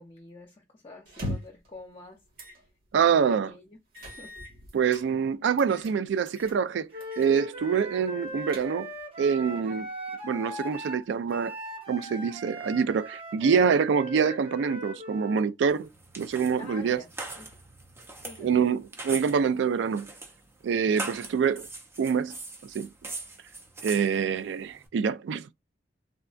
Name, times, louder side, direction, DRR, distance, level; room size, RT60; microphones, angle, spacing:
voice 1, 0.0-2.6 3.0-3.2 3.5-3.8 4.1-4.4 16.6-17.1 17.4-17.5 18.2-18.6, left 3 dB, 30° left, 0.6 m, -47 dB
sound 1, 1.1-1.7 2.4-2.6 3.0-3.1 3.9-5.1 5.6-5.9 6.3-6.6 7.0-7.3 7.6-7.7 8.2-9.0, left 1 dB, 55° right, 1.4 m, -39 dB
voice 2, 2.9-3.5 4.7-6.9 7.2-8.9 9.2-9.9 10.2-11.5 11.9-15.9 16.2-17.0 18.4-20.1 20.6-21.7 22.0-22.3 22.6-22.9 23.8-25.5, right 6 dB, 70° right, 0.3 m, -25 dB
Wind instrument woodwind instrument, 6.9-15.5, equal, 30° right, 0.8 m, -39 dB
sound 2, 15.7-24.9, right 2 dB, 15° right, 0.5 m, -42 dB
3.5 x 2.2 x 2.4 m
head